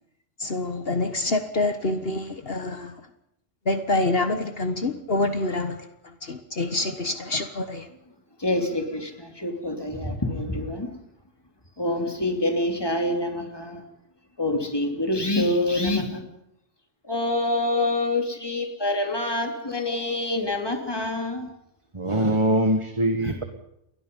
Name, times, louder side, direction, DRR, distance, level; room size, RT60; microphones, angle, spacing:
voice 1, 0.4-2.9 3.7-5.8 6.3-7.9, left 2 dB, 55° left, 8 dB, 1.6 m, -26 dB
voice 2, 8.4-10.9 11.8-13.8 14.4-16.3 17.1-21.5, left 2 dB, 20° left, 3 dB, 3.1 m, -26 dB
voice 3, 21.9-23.4, right 1 dB, 25° right, 6 dB, 1.7 m, -22 dB
29.0 x 21.5 x 5.5 m, 0.81 s
omnidirectional pair, 1.2 m